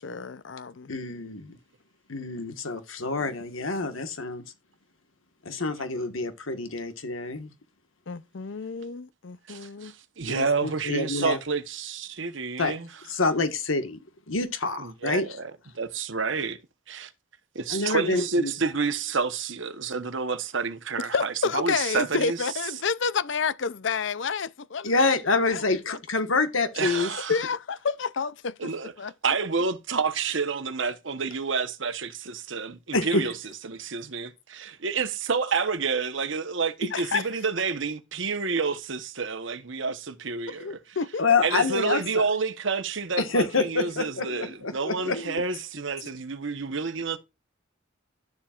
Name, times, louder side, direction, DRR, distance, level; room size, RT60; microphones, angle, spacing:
voice 1, 0.0-0.9 8.1-9.9 21.1-25.1 25.5-26.0 27.3-28.7 29.0-29.1 36.9-37.3 40.5-41.4 45.1-45.4, left 5 dB, 65° left, 0.6 m, -30 dB
voice 2, 0.9-1.6 2.1-4.4 5.4-7.5 10.3-11.4 12.6-12.7 13.1-14.0 14.3-15.4 17.7-18.5 24.8-27.1 32.9-33.2 41.2-42.2 43.2-45.2 46.0-46.1, left 3 dB, 90° left, 1.6 m, -27 dB
voice 3, 9.5-12.9 14.8-15.5 15.8-16.6 16.9-17.1 17.5-22.4 26.7-27.4 28.6-28.9 29.2-33.4 33.6-40.8 41.4-47.2, right 5 dB, 70° right, 1.1 m, -29 dB
12.0 x 7.3 x 2.5 m
head